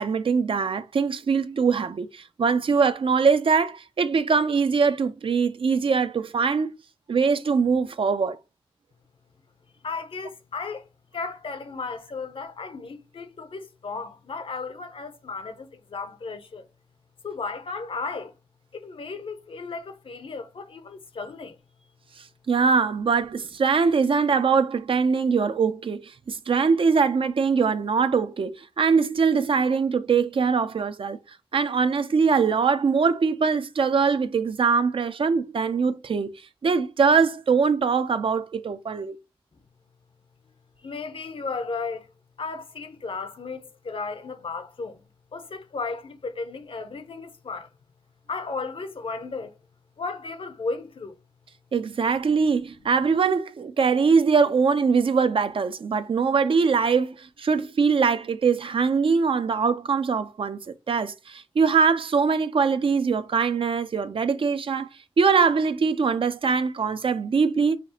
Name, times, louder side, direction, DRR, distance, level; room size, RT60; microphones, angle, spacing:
voice 1, 0.0-6.7 7.1-8.4 22.5-31.2 31.5-39.2 51.7-60.6 60.9-64.9 65.2-67.8, right 5 dB, 70° right, 0.4 m, -22 dB
voice 2, 9.8-10.9 11.1-16.7 17.2-18.3 18.7-21.6 40.8-42.1 42.4-45.0 45.3-47.7 48.3-49.6 50.0-51.2, left 4 dB, 70° left, 0.6 m, -34 dB
5.8 x 2.4 x 2.8 m
wide cardioid pair, 65°, 10 cm